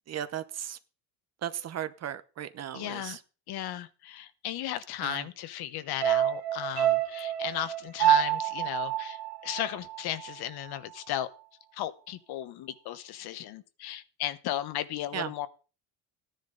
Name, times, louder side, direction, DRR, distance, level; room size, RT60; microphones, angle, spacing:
voice 1, 0.1-0.8 1.4-3.2 5.0-5.3 15.1-15.3, right 10 dB, 40° right, 0.9 m, -36 dB
voice 2, 2.7-3.2 3.5-11.3 11.7-15.5, left 12 dB, 60° left, 1.2 m, -35 dB
sound 1, 6.0-10.4 10.7-10.8, right 12 dB, 65° right, 2.5 m, -27 dB
14.5 x 10.5 x 4.0 m
cardioid pair, 155°, 42 cm